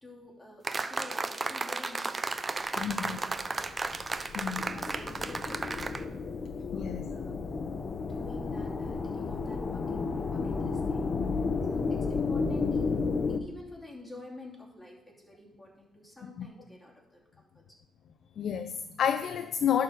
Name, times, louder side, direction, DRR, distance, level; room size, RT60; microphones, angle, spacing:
voice 1, 0.0-3.7 4.0-6.2 6.7-7.4 7.9-11.1 11.7-12.9 13.4-17.6, left 1 dB, 10° left, 2.7 m, -50 dB
sound 1, 0.6-6.0, right 3 dB, 25° right, 0.6 m, -34 dB
voice 2, 2.8-3.2 4.3-4.7 6.7-7.1 11.1-11.5 16.4-16.5 18.4-19.8, left 8 dB, 65° left, 0.5 m, -30 dB
sound 2, 3.3-13.4, left 4 dB, 40° left, 0.8 m, -32 dB
11.0 x 4.1 x 6.4 m
cardioid pair, 90°, 0 cm